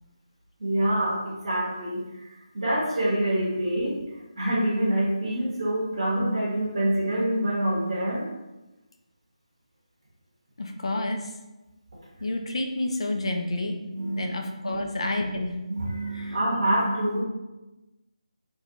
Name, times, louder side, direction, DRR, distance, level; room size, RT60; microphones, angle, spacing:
voice 1, 0.6-2.0 2.5-4.0 4.4-8.3 13.9-14.2 14.6-14.8 15.7-17.2, right 1 dB, 50° right, -6 dB, 0.8 m, -26 dB
voice 2, 10.6-11.3 12.2-13.8 14.1-15.5 16.1-16.4, left 2 dB, 55° left, 3 dB, 0.4 m, -29 dB
2.6 x 2.1 x 2.6 m, 1.0 s
figure-of-eight pair, 155°, 4 cm